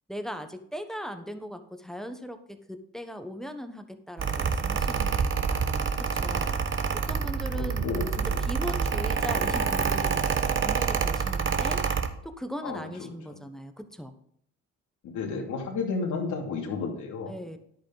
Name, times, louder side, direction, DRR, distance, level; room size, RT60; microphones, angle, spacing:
voice 1, 0.1-6.6 6.9-7.9 8.2-10.3 10.6-11.8 12.2-14.1 17.3-17.6, equal, ahead, 7 dB, 1.1 m, -39 dB
Mechanical fan, 4.2-12.1, right 6 dB, 40° right, 1.1 m, -27 dB
voice 2, 7.5-8.4 12.6-13.1 15.0-17.3, left 4 dB, 80° left, 0 dB, 2.8 m, -32 dB
10.5 x 8.4 x 4.0 m, 0.68 s
cardioid pair, 90°, 30 cm